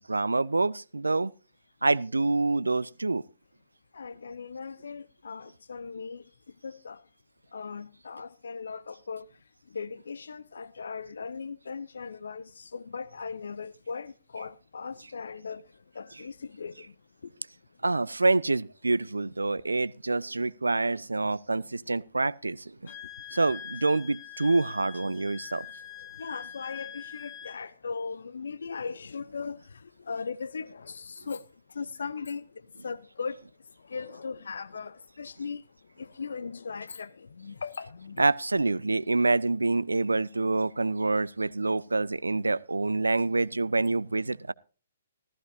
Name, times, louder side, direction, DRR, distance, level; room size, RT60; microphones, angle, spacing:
voice 1, 0.1-1.3 1.8-3.2 17.8-22.7 23.3-25.7 38.2-44.5, right 3 dB, 80° right, 0.5 m, -26 dB
voice 2, 3.9-6.3 6.6-7.0 7.5-9.3 9.7-17.0 17.2-17.3 21.2-21.6 22.8-23.0 25.1-25.2 26.0-31.4 31.7-33.4 33.8-35.6 36.0-38.2, left 5 dB, 65° left, 0.6 m, -39 dB
Wind instrument woodwind instrument, 22.9-27.6, left 10 dB, 25° left, 1.2 m, -44 dB
14.5 x 14.5 x 2.6 m
figure-of-eight pair, 125°, 0 cm